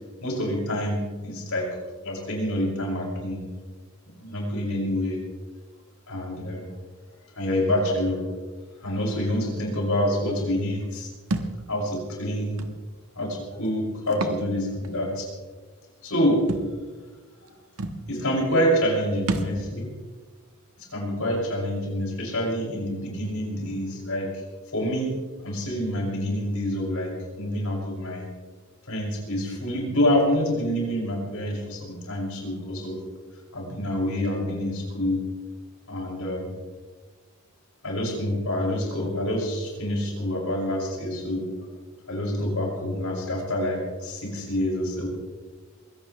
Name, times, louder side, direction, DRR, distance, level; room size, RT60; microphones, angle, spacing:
voice 1, 0.2-1.7 2.0-3.4 4.2-5.2 6.1-6.7 7.4-8.2 8.8-11.1 11.7-12.6 13.2-15.3 16.0-16.4 18.1-19.9 20.8-24.3 24.7-25.1 25.4-28.2 28.9-33.0 33.5-35.2 35.9-36.5 37.8-41.4 42.1-45.1, equal, 75° left, -2 dB, 6.1 m, -27 dB
Thump thud, 11.3-11.6 12.6-12.7 14.1-14.4 14.8-14.9 16.5-16.7 17.5-17.6 17.8-18.0 19.3-19.6, right 2 dB, 75° right, 1.3 m, -28 dB
23.0 x 17.0 x 3.2 m, 1.4 s
head